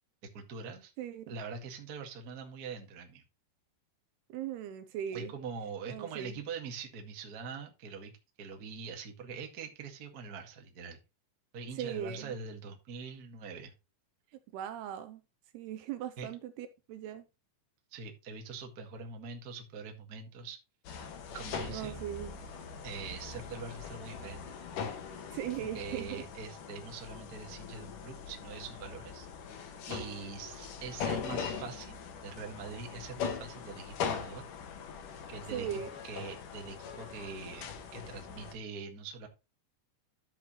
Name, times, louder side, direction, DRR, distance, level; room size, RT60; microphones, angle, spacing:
voice 1, 0.2-0.9 1.3-3.2 5.1-8.1 8.4-11.0 11.5-13.7 16.2-16.3 17.9-20.6 21.3-22.1 22.8-24.6 25.6-29.3 29.9-31.9 32.2-34.4 35.3-39.3, right 5 dB, 50° right, 1.0 m, -43 dB
voice 2, 1.0-1.3 4.3-5.3 5.9-6.4 11.7-12.4 14.5-15.2 15.5-17.2 21.7-22.4 25.3-26.2 35.5-35.9, right 10 dB, 80° right, 2.5 m, -39 dB
sound 1, 20.8-38.5, left 6 dB, 60° left, 2.5 m, -41 dB
13.5 x 6.6 x 3.1 m
omnidirectional pair, 5.1 m